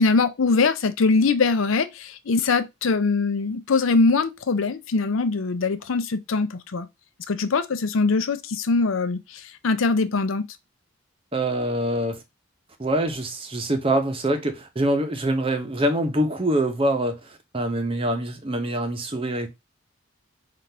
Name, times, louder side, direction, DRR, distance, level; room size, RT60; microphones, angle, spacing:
voice 1, 0.0-6.9 7.3-10.5, left 4 dB, 75° left, 0.5 m, -22 dB
voice 2, 11.3-12.2 12.8-19.5, right 1 dB, 25° right, 0.7 m, -25 dB
5.7 x 2.5 x 3.3 m
head